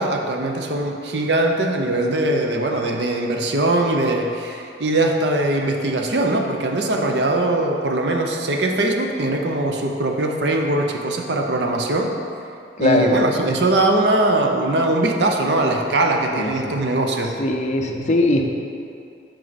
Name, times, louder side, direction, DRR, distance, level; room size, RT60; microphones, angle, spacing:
voice 1, 0.0-12.1 12.8-17.3, right 2 dB, 75° right, 2 dB, 0.7 m, -21 dB
voice 2, 12.8-13.1 16.4-16.8 17.4-18.5, left 2 dB, 40° left, 2 dB, 0.6 m, -20 dB
7.6 x 6.4 x 4.1 m, 2.5 s
head